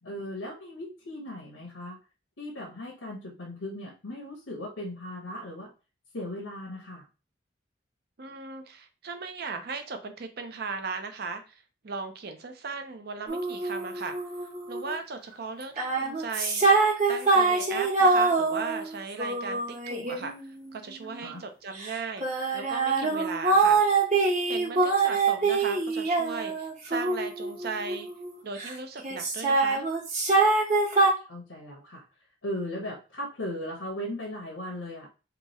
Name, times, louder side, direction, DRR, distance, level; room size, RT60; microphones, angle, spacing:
voice 1, 0.0-2.0 2.4-5.7 6.1-7.0 21.2-21.4 31.3-32.0 32.4-35.1, left 1 dB, 85° left, 0 dB, 0.9 m, -37 dB
voice 2, 8.2-14.2 14.7-16.7 17.1-22.2 22.5-23.8 24.5-28.1 28.4-29.8, right 4 dB, 55° right, 7 dB, 0.6 m, -37 dB
sound 1, 13.3-14.9 15.6-21.2 21.8-28.7 29.0-31.1, right 3 dB, 35° right, 1.0 m, -25 dB
3.0 x 2.3 x 4.0 m, 0.32 s
head